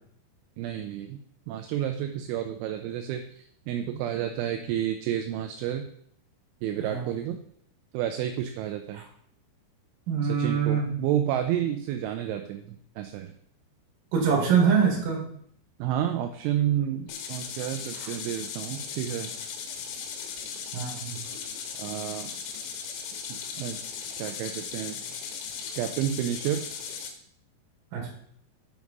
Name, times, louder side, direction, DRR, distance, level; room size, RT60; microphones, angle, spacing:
voice 1, 0.6-1.2 1.5-5.9 6.6-7.4 7.9-9.0 10.2-13.3 15.8-19.3 21.8-22.4 23.3-23.8 24.2-25.0 25.7-26.6, right 11 dB, 85° right, 6 dB, 2.8 m, -30 dB
voice 2, 10.1-10.9 14.1-15.2 20.7-21.2 27.9-28.1, right 6 dB, 55° right, -1 dB, 3.1 m, -24 dB
sound 1, 17.1-27.1, left 6 dB, 85° left, 3.6 m, -37 dB
7.3 x 4.7 x 5.2 m, 0.65 s
omnidirectional pair, 5.9 m